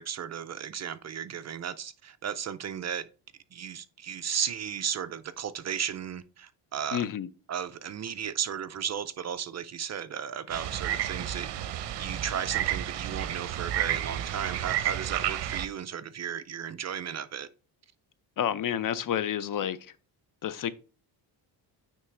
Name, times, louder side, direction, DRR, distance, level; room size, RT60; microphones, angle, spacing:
voice 1, 0.0-3.1 3.5-7.0 7.5-17.5, right 8 dB, 35° right, 0.4 m, -35 dB
voice 2, 6.9-7.3 18.4-19.9 20.4-20.7, left 10 dB, 45° left, 0.5 m, -30 dB
sound 1, 10.5-15.7, right 11 dB, 60° right, 0.8 m, -31 dB
9.1 x 3.4 x 3.2 m
cardioid pair, 100°, 47 cm